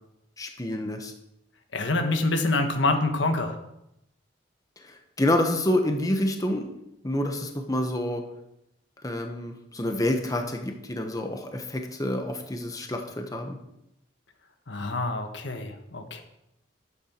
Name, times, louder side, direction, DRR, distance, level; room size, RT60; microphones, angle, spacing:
voice 1, 0.4-1.1 4.8-6.7 7.0-8.2 9.0-13.6, left 1 dB, 20° left, 4 dB, 1.1 m, -28 dB
voice 2, 1.7-3.6 14.7-16.2, left 2 dB, 90° left, 5 dB, 1.4 m, -26 dB
11.5 x 8.7 x 4.5 m, 0.82 s
head